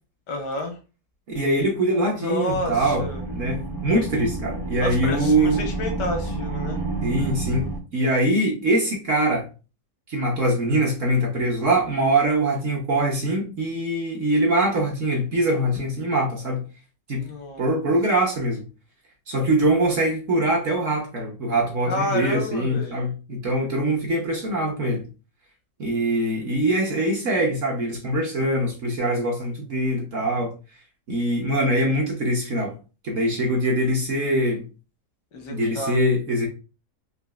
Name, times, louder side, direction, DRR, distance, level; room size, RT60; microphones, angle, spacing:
voice 1, 0.3-0.8 2.1-3.2 4.8-6.8 17.2-17.7 21.9-23.0 35.3-36.1, left 1 dB, 90° left, 1.5 m, -30 dB
voice 2, 1.3-3.1 3.3-5.7 7.0-7.7 7.9-9.5 10.1-16.6 17.1-17.2 17.6-18.6 19.3-25.0 25.8-30.5 31.1-32.7 33.0-34.6 35.5-36.5, right 1 dB, 55° right, 1.0 m, -23 dB
sound 1, 2.5-7.8, right 3 dB, 25° right, 0.4 m, -30 dB
4.0 x 2.5 x 2.3 m
omnidirectional pair, 1.8 m